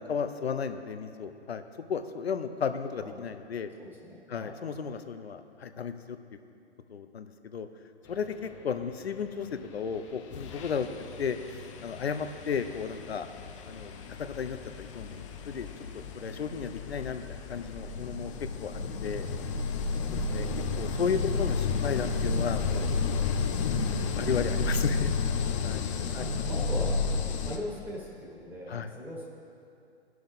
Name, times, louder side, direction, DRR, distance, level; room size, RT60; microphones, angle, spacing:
voice 1, 0.0-1.6 1.9-3.7 4.3-6.2 6.9-7.7 8.1-10.9 11.2-11.4 11.8-13.3 13.7-13.9 14.2-15.7 15.9-18.3 18.6-19.3 20.1-20.5 20.8-22.9 23.6-25.1 25.6-25.8 26.1-26.4 28.7-28.9, left 6 dB, 70° left, 9 dB, 0.8 m, -34 dB
voice 2, 3.8-4.6 26.1-29.3, equal, 5° right, -4 dB, 1.7 m, -40 dB
sound 1, 9.8-10.0 10.3-27.6, left 4 dB, 30° left, 0.6 m, -32 dB
18.5 x 6.3 x 3.5 m, 2.5 s
figure-of-eight pair, 120°, 33 cm